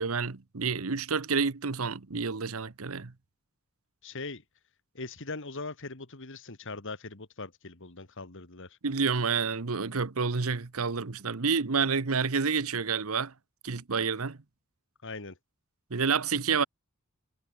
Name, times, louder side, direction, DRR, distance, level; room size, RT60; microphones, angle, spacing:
voice 1, 0.0-3.1 8.8-13.3 13.6-14.4 15.9-16.6, right 5 dB, 75° right, 1.0 m, -29 dB
voice 2, 4.0-4.4 4.9-8.8 15.0-15.4, left 3 dB, 60° left, 2.4 m, -40 dB
head